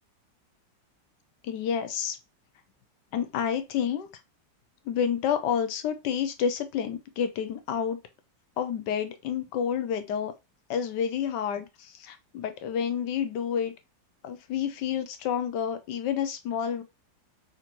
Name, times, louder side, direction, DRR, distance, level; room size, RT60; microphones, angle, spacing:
voice 1, 1.4-2.2 3.1-4.1 4.9-8.0 8.6-10.3 10.7-13.7 14.2-16.8, left 8 dB, 70° left, 1.2 m, -29 dB
4.4 x 2.6 x 4.3 m
omnidirectional pair, 2.0 m